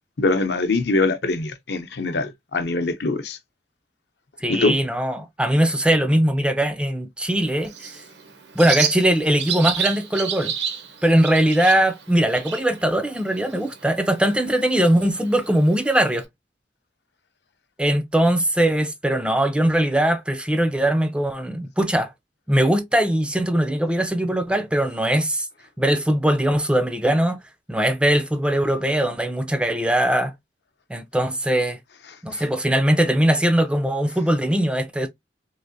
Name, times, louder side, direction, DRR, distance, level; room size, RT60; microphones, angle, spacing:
voice 1, 0.2-3.4 4.5-4.8 32.3-32.4, left 3 dB, 65° left, 0.7 m, -23 dB
voice 2, 4.4-7.7 8.6-10.5 11.0-16.2 17.8-22.1 22.5-25.5 25.8-27.4 27.7-30.3 30.9-31.8 32.2-35.1, right 1 dB, 5° right, 0.4 m, -20 dB
Bird, 7.3-16.2, right 7 dB, 70° right, 0.8 m, -32 dB
3.2 x 2.8 x 2.6 m
head